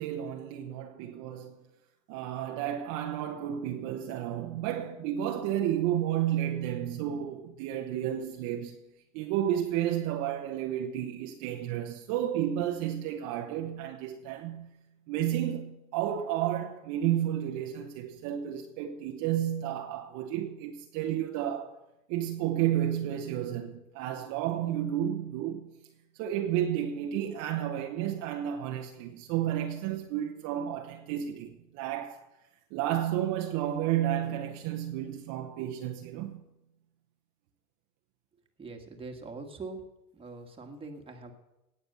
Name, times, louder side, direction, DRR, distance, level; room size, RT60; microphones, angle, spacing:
voice 1, 0.0-1.6 2.1-8.8 9.1-14.8 15.1-21.8 22.1-25.8 26.2-32.2 32.7-36.4, right 11 dB, 40° right, 1.1 m, -32 dB
voice 2, 38.6-39.8 40.1-41.3, right 3 dB, 10° right, 1.7 m, -42 dB
17.5 x 6.8 x 6.8 m
hypercardioid pair, 130°, 46 cm